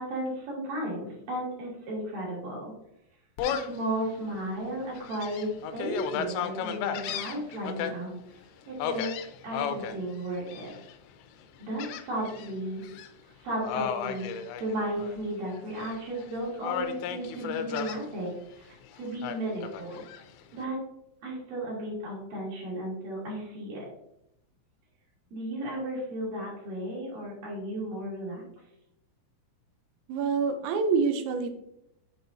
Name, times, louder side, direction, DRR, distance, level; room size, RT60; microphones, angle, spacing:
voice 1, 0.0-2.7 3.4-8.1 8.7-9.1 9.4-10.7 11.6-12.8 13.4-14.3 14.6-20.0 20.5-20.8 21.2-23.9 25.3-28.4, right 1 dB, 55° right, -5 dB, 3.7 m, -34 dB
Gull seagull, 3.4-3.8 4.3-4.4 4.9-7.9 8.8-9.9 10.5-10.9 11.8-12.5 12.8-13.1 13.6-15.2 15.5-16.2 16.6-18.0 19.2-20.2, left 8 dB, 85° left, 2.8 m, -34 dB
voice 2, 30.1-31.5, right 5 dB, 80° right, 7 dB, 3.0 m, -26 dB
7.9 x 4.8 x 2.7 m, 0.80 s
omnidirectional pair, 5.3 m